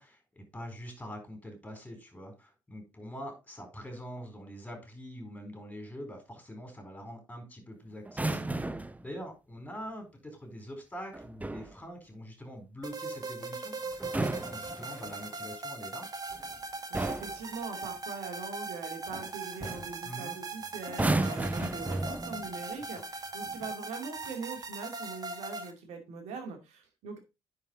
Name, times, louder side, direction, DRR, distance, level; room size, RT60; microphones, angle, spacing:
voice 1, 0.0-8.7 9.0-16.1 20.0-20.4 22.9-23.0, equal, 10° left, 4 dB, 4.3 m, -44 dB
sound 1, 8.1-9.0 11.1-11.8 13.9-15.3 16.3-16.6 16.9-17.4 19.1-19.3 19.6-19.9 20.9-22.5 23.5-23.7, right 2 dB, 10° right, 0.7 m, -33 dB
sound 2, 12.8-25.7, right 3 dB, 30° right, 1.7 m, -40 dB
voice 2, 16.9-27.2, right 4 dB, 60° right, 4 dB, 2.4 m, -42 dB
10.0 x 4.9 x 4.0 m, 0.26 s
figure-of-eight pair, 45°, 13 cm